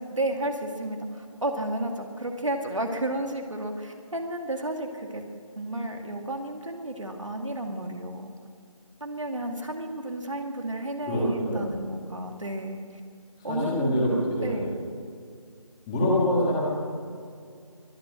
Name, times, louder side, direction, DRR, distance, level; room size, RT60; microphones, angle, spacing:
voice 1, 0.0-5.2 5.6-8.3 9.0-12.8 13.4-14.8, right 1 dB, 65° right, 4 dB, 2.3 m, -32 dB
voice 2, 11.1-11.7 13.4-14.7 15.9-16.6, left 1 dB, 10° left, -4 dB, 1.7 m, -25 dB
22.5 x 9.7 x 6.4 m, 2.2 s
figure-of-eight pair, 165°, 18 cm